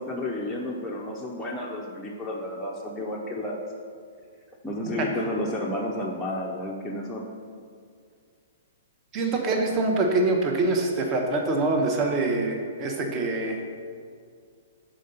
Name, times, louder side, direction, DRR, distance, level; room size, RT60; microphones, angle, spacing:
voice 1, 0.0-3.6 4.6-7.3 9.2-9.3, left 1 dB, 5° left, -4 dB, 0.5 m, -31 dB
voice 2, 9.1-13.6, right 2 dB, 25° right, 2 dB, 0.8 m, -25 dB
6.3 x 3.9 x 5.4 m, 2.2 s
figure-of-eight pair, 115°, 0 cm